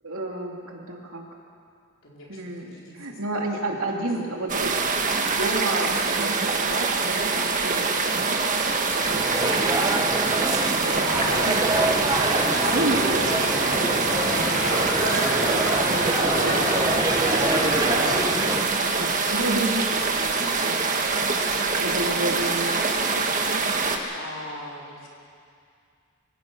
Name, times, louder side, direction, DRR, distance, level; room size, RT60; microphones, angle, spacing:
voice 1, 0.0-1.2 2.3-5.0 5.3-8.6 8.9-9.8 10.7-11.7 12.2-20.9 21.8-22.8, right 2 dB, 75° right, 0 dB, 2.9 m, -32 dB
voice 2, 2.0-2.4 2.7-3.8 4.3-4.7 21.6-22.2 22.8-23.8 24.1-25.1, left 1 dB, 60° left, -4 dB, 5.0 m, -41 dB
sound 1, 4.5-24.0, right 4 dB, 35° right, 1.6 m, -24 dB
sound 2, 9.0-18.7, right 2 dB, 15° right, 1.0 m, -27 dB
sound 3, 10.9-18.3, equal, 75° left, 4.2 m, -29 dB
25.5 x 16.5 x 6.3 m, 2.3 s
head